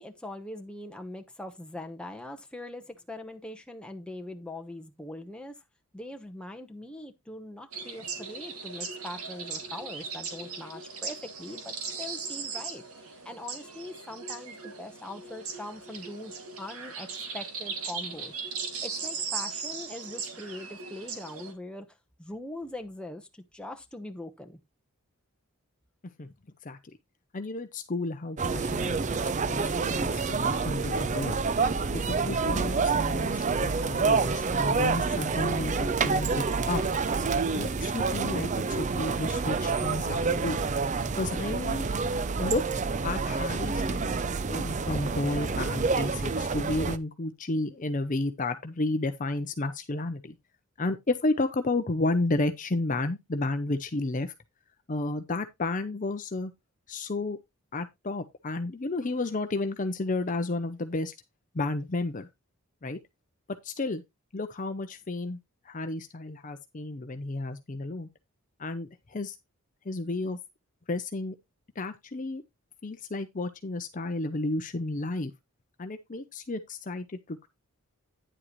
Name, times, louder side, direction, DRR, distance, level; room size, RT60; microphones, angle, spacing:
voice 1, 0.0-5.6 5.9-17.1 17.3-18.3 18.8-24.6, left 1 dB, 5° left, 1.0 m, -42 dB
sound 1, 7.7-21.5, right 5 dB, 80° right, 2.2 m, -38 dB
voice 2, 27.3-31.4 31.9-36.8 37.5-38.5 38.8-40.6 41.2-41.9 42.4-42.6 43.0-50.4 50.8-54.3 54.9-56.5 56.9-57.4 57.7-61.1 61.5-62.3 62.8-63.0 63.6-64.0 64.3-65.4 65.6-68.1 68.6-69.4 69.8-70.4 70.9-71.3 71.8-72.4 72.8-75.3 75.8-77.5, left 2 dB, 35° left, 0.6 m, -32 dB
sound 2, 28.4-47.0, right 4 dB, 35° right, 0.5 m, -28 dB
9.9 x 7.6 x 3.1 m
head